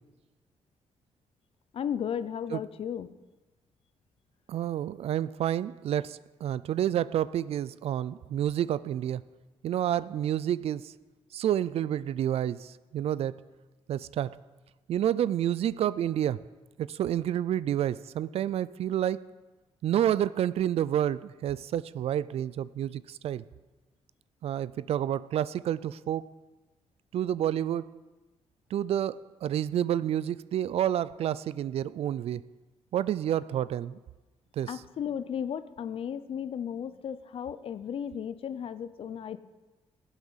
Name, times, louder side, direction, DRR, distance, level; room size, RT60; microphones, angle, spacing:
voice 1, 1.7-3.1 34.7-39.4, left 8 dB, 60° left, 0.6 m, -35 dB
voice 2, 4.5-9.2 9.6-10.9 11.3-13.4 13.9-14.4 14.9-16.4 16.8-19.2 19.8-23.4 24.4-26.3 27.1-27.9 28.7-32.4 32.9-34.0 34.6-34.7, right 11 dB, 70° right, 0.4 m, -29 dB
15.0 x 8.1 x 5.7 m
cardioid pair, 90°, 11 cm